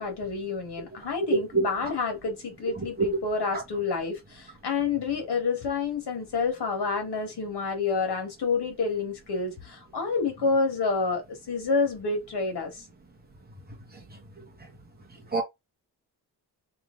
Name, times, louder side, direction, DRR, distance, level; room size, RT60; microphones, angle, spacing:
voice 1, 0.0-12.9, left 4 dB, 85° left, 1.6 m, -28 dB
voice 2, 1.3-1.7 3.0-3.1 15.3-15.4, right 3 dB, 25° right, 1.0 m, -23 dB
3.2 x 2.9 x 3.7 m
wide cardioid pair, 180°, 39 cm